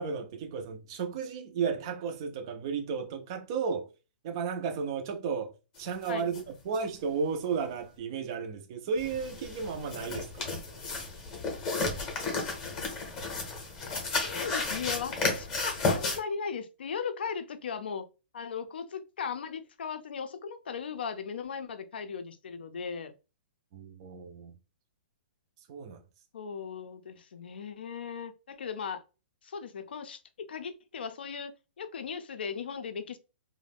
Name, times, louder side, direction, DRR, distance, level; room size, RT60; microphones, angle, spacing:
voice 1, 0.0-3.9 4.2-5.5 5.8-10.6 23.7-24.5 25.7-26.0, right 5 dB, 25° right, 0.3 m, -33 dB
sound 1, 6.0-6.1 6.3-6.4 6.7-6.8 9.0-16.2, left 3 dB, 15° left, 0.7 m, -33 dB
voice 2, 14.2-18.1 18.3-23.1 26.3-29.0 29.4-31.5 31.8-33.2, left 6 dB, 65° left, 0.4 m, -37 dB
2.5 x 2.1 x 3.3 m
hypercardioid pair, 175°, 6 cm